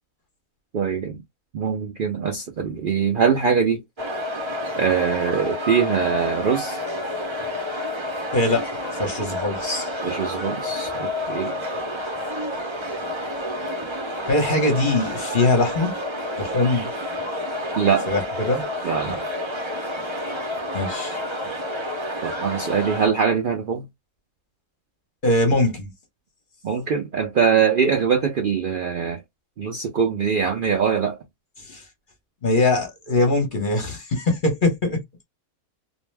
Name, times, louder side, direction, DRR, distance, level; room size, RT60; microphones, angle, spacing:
voice 1, 0.7-1.2 1.5-3.8 4.8-6.8 10.0-11.5 17.8-18.1 18.8-19.2 22.2-23.9 26.6-29.2 29.6-31.2, right 6 dB, 80° right, 0.4 m, -22 dB
sound 1, 4.0-23.1, left 1 dB, 30° right, 0.5 m, -29 dB
voice 2, 8.3-9.9 14.3-15.9 16.4-16.9 18.1-18.7 19.0-19.2 20.7-21.2 25.2-25.9 31.6-31.8 32.4-35.0, left 2 dB, 40° left, 0.9 m, -22 dB
2.5 x 2.1 x 3.2 m
omnidirectional pair, 1.6 m